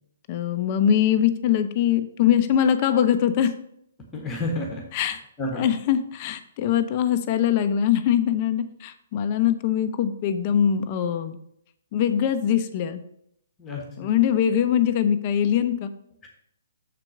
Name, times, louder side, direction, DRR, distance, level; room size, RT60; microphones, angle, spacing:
voice 1, 0.3-3.5 4.9-5.2 5.5-11.4 11.9-13.0 14.0-15.9, left 9 dB, 35° left, 9 dB, 0.6 m, -22 dB
voice 2, 4.1-4.8 5.4-5.6 13.6-14.1, left 1 dB, 20° left, 2 dB, 1.3 m, -30 dB
6.8 x 4.5 x 6.4 m, 0.72 s
figure-of-eight pair, 135°, 0 cm